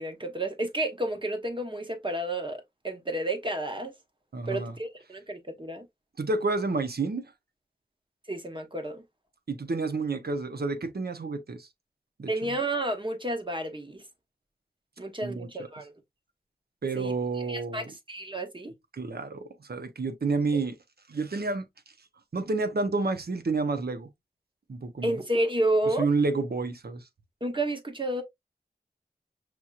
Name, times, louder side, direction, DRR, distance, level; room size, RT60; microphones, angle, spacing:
voice 1, 0.0-3.9 4.5-5.9 8.3-9.0 12.3-14.0 15.0-15.9 16.9-18.7 25.0-26.1 27.4-28.2, right 1 dB, 30° right, 1.2 m, -31 dB
voice 2, 4.3-4.7 6.2-7.3 9.5-11.7 12.2-12.3 15.2-15.7 16.8-17.9 18.9-20.7 21.1-21.6 22.3-24.1 24.7-25.2 26.0-27.1, right 3 dB, 80° right, 0.8 m, -29 dB
6.1 x 2.9 x 2.4 m
wide cardioid pair, 60°, 16 cm